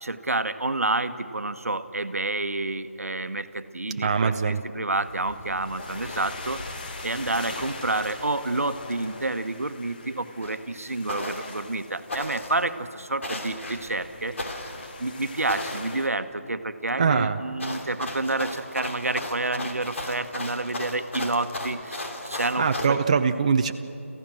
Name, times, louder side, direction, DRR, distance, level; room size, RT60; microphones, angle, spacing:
voice 1, 0.0-6.6 7.0-14.3 15.0-23.0, right 2 dB, 80° right, 10 dB, 1.1 m, -29 dB
voice 2, 4.0-4.6 17.0-17.4 22.6-23.7, right 5 dB, 30° right, 7 dB, 0.5 m, -22 dB
sound 1, 4.9-16.1, left 2 dB, 40° left, 1.7 m, -41 dB
sound 2, 10.4-10.6 11.1-11.6 12.1-12.6 13.2-13.8 14.4-14.9 15.5-16.0 17.6-22.9, left 1 dB, 60° left, 2.9 m, -35 dB
27.5 x 15.0 x 6.2 m, 2.9 s
figure-of-eight pair, 165°, 8 cm